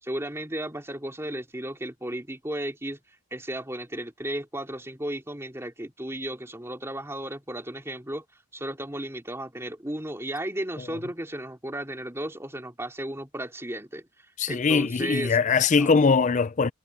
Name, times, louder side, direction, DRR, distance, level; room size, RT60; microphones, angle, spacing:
voice 1, 0.0-8.2 8.5-14.1 14.5-15.4 15.7-15.9, right 1 dB, 10° right, 2.8 m, -34 dB
voice 2, 14.4-16.7, left 5 dB, 35° left, 0.4 m, -21 dB
head